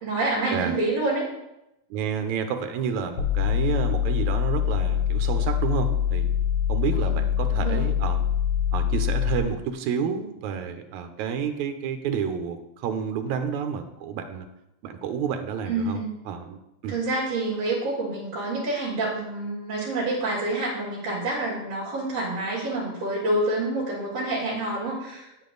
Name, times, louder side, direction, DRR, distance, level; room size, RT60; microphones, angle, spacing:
voice 1, 0.0-1.3 6.9-7.2 7.5-7.9 15.7-16.1 16.9-25.4, right 2 dB, 55° right, -7 dB, 3.1 m, -27 dB
voice 2, 1.9-6.3 6.7-8.2 8.7-14.5 14.8-16.0 16.3-16.6 16.8-17.0, right 7 dB, 75° right, 7 dB, 2.2 m, -30 dB
sound 1, 3.2-9.4, left 9 dB, 75° left, 2.5 m, -24 dB
9.4 x 8.9 x 4.0 m, 0.87 s
omnidirectional pair, 3.5 m